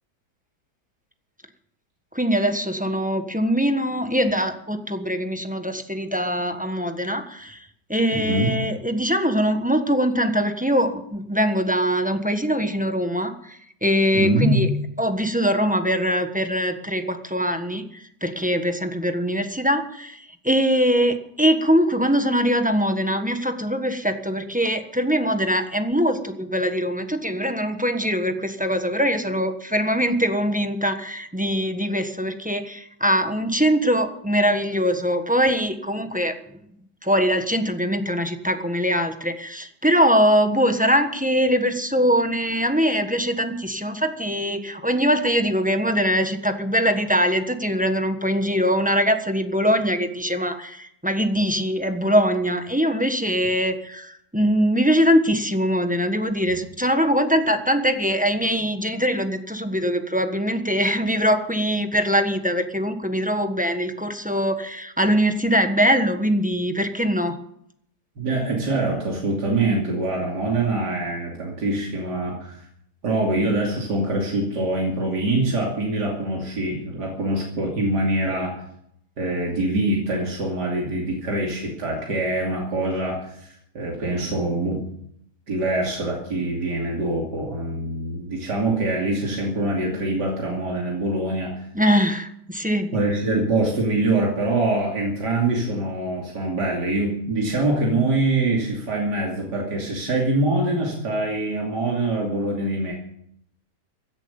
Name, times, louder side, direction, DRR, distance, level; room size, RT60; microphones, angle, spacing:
voice 1, 2.1-7.6 7.9-14.7 15.0-36.4 37.0-67.4 91.7-92.9, equal, 5° right, 7 dB, 1.2 m, -22 dB
voice 2, 8.1-8.5 14.1-14.6 68.2-72.6 73.0-78.6 79.2-84.8 85.5-91.7 92.9-102.9, right 2 dB, 80° right, -1 dB, 3.4 m, -24 dB
16.5 x 10.5 x 7.1 m, 0.71 s
omnidirectional pair, 1.8 m